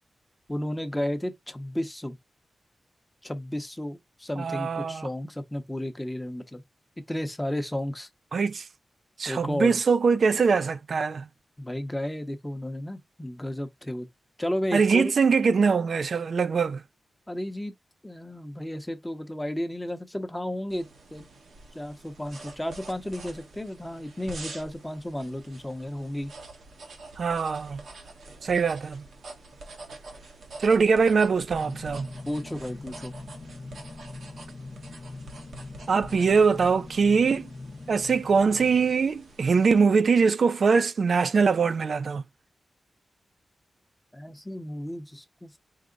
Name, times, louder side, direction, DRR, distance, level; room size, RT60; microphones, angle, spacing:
voice 1, 0.5-2.2 3.2-6.6 7.1-8.1 9.3-9.8 11.6-14.1 14.4-15.1 17.3-17.7 18.0-21.3 21.7-26.3 32.3-33.2 44.1-45.5, left 1 dB, 10° left, 0.8 m, -33 dB
voice 2, 4.4-5.1 8.3-8.7 9.2-11.3 14.7-16.8 27.2-27.8 28.4-29.0 30.6-32.1 35.9-37.5 37.9-42.2, right 5 dB, 60° right, 0.3 m, -22 dB
sound 1, 20.7-39.8, right 3 dB, 90° right, 1.2 m, -46 dB
sound 2, 31.1-39.5, left 3 dB, 40° left, 0.4 m, -43 dB
4.7 x 2.1 x 3.8 m
wide cardioid pair, 120°, 0 cm